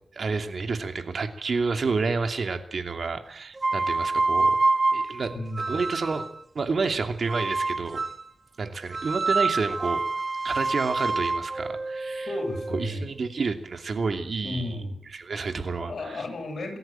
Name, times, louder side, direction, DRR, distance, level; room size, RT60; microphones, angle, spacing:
voice 1, 0.1-4.6 4.9-5.3 5.7-6.3 6.5-8.0 8.6-10.0 10.4-12.3 12.7-14.7 15.1-16.3, right 4 dB, 55° right, 6 dB, 2.7 m, -29 dB
sound 1, 3.6-6.4 7.3-8.3 8.9-12.9, right 3 dB, 30° right, 1.0 m, -27 dB
voice 2, 5.3-5.7 12.3-13.1 14.4-15.0 15.8-16.8, left 1 dB, 55° left, 3 dB, 7.9 m, -33 dB
24.0 x 14.0 x 9.0 m, 0.67 s
wide cardioid pair, 105°, 0 cm